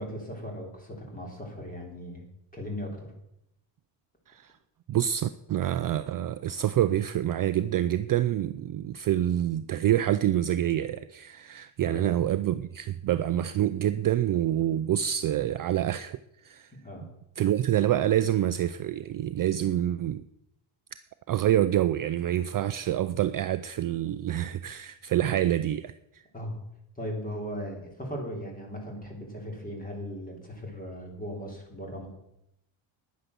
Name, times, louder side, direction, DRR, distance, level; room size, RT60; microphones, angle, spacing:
voice 1, 0.0-2.3 2.5-3.1 11.8-12.1 16.8-17.1 26.3-26.6 27.0-32.1, equal, 15° left, 1 dB, 3.4 m, -38 dB
voice 2, 4.9-16.2 16.4-16.7 17.4-20.2 21.3-26.2, right 12 dB, 45° right, 12 dB, 0.4 m, -27 dB
10.5 x 9.9 x 6.8 m, 0.82 s
cardioid pair, 155°, 49 cm